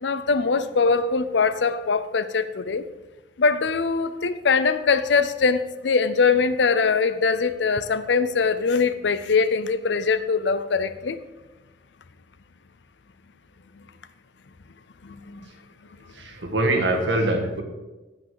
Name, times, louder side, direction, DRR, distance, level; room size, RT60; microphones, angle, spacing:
voice 1, 0.0-2.8 3.4-11.2 15.0-15.4, left 4 dB, 70° left, 13 dB, 0.6 m, -22 dB
voice 2, 16.1-17.6, right 1 dB, 80° right, 4 dB, 1.6 m, -23 dB
9.0 x 8.5 x 4.8 m, 1.1 s
head